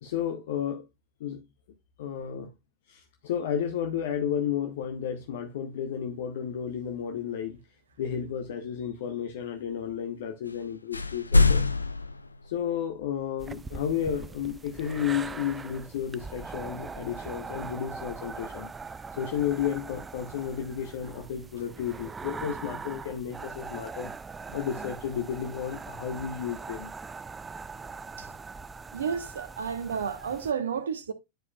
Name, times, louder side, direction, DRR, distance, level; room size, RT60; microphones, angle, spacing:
voice 1, 0.0-0.9 1.2-1.4 2.0-2.5 2.9-7.6 8.0-11.6 12.4-18.7 19.1-24.1 24.5-26.9, left 9 dB, 55° left, 0.9 m, -32 dB
sound 1, 10.5-10.6 10.9-13.0, left 3 dB, 80° left, 0.4 m, -24 dB
sound 2, 13.4-30.5, right 4 dB, 15° right, 0.3 m, -41 dB
voice 2, 28.9-31.1, right 7 dB, 65° right, 1.0 m, -31 dB
10.0 x 4.7 x 2.3 m
figure-of-eight pair, 90°, 0 cm